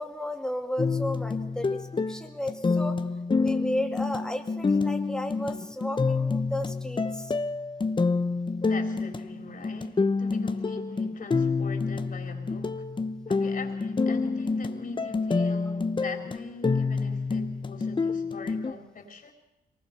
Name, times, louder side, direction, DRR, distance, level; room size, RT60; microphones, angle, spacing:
voice 1, 0.0-3.0 3.4-7.3, left 1 dB, 5° left, 2.5 m, -33 dB
sound 1, 0.8-18.7, left 4 dB, 30° left, 0.9 m, -28 dB
voice 2, 8.6-12.9 13.3-19.3, left 4 dB, 50° left, 4.0 m, -42 dB
23.0 x 19.5 x 6.9 m
cardioid pair, 85°, 17 cm